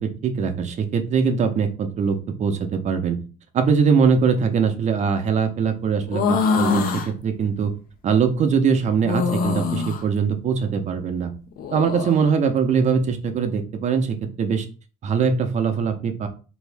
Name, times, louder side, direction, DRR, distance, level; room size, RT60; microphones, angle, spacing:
voice 1, 0.0-3.2 3.5-7.7 8.0-11.3 11.7-14.7 15.0-16.3, right 6 dB, 45° right, 7 dB, 0.6 m, -22 dB
sound 1, 6.1-7.1 9.0-10.0 11.5-12.2, left 5 dB, 55° left, 0.6 m, -23 dB
2.9 x 2.7 x 3.3 m, 0.35 s
cardioid pair, 110°, 17 cm